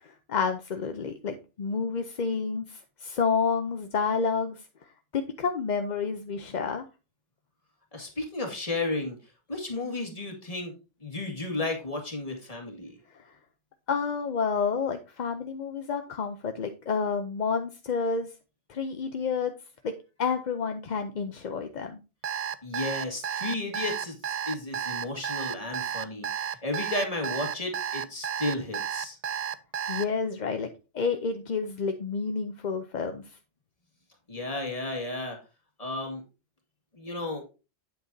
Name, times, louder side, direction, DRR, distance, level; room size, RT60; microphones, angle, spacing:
voice 1, 0.0-4.6 5.1-6.8 13.1-13.3 13.9-18.3 18.7-19.5 19.8-19.9 20.2-22.0 29.9-30.7 30.9-33.4, left 5 dB, 45° left, 6 dB, 0.7 m, -29 dB
voice 2, 7.9-9.2 9.5-10.7 11.0-13.0 22.6-29.2 34.3-35.4 35.8-36.2 36.9-37.4, left 2 dB, 30° left, 2 dB, 2.1 m, -33 dB
Alarm, 22.2-30.1, right 9 dB, 55° right, 0.4 m, -32 dB
9.0 x 7.9 x 2.7 m, 0.31 s
omnidirectional pair, 1.2 m